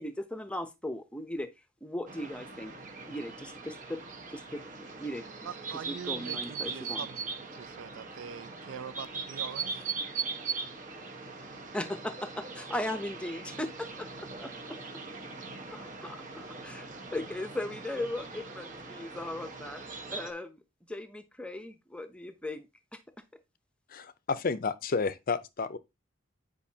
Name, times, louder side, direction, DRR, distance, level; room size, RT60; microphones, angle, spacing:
voice 1, 0.0-1.5 1.8-2.7 3.1-7.1 11.7-14.8 15.7-19.8 20.1-20.6 20.9-22.7 22.9-23.0, left 1 dB, 5° left, 0.7 m, -38 dB
sound 1, 2.1-20.3, right 4 dB, 40° right, 1.2 m, -40 dB
voice 2, 5.4-9.9, right 7 dB, 80° right, 0.4 m, -44 dB
voice 3, 23.9-25.8, left 4 dB, 45° left, 0.5 m, -31 dB
9.1 x 5.2 x 2.8 m
head